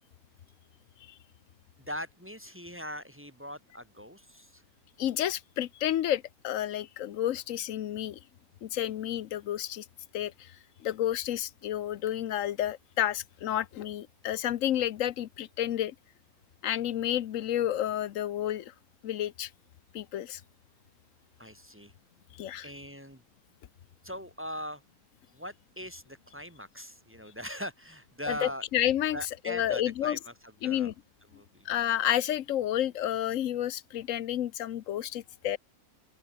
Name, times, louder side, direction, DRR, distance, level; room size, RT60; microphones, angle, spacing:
voice 1, 1.8-4.6 21.4-21.9 22.6-23.2 24.0-24.8 25.3-28.6 29.1-30.9 31.3-31.7, equal, 5° right, 6.0 m, -41 dB
voice 2, 5.0-8.2 8.6-9.8 10.1-10.3 10.8-15.9 16.6-18.7 19.0-19.5 19.9-20.4 22.4-22.7 28.3-29.2 29.5-30.2 30.6-30.9 31.7-35.6, left 11 dB, 65° left, 1.0 m, -30 dB
open air
omnidirectional pair, 1.6 m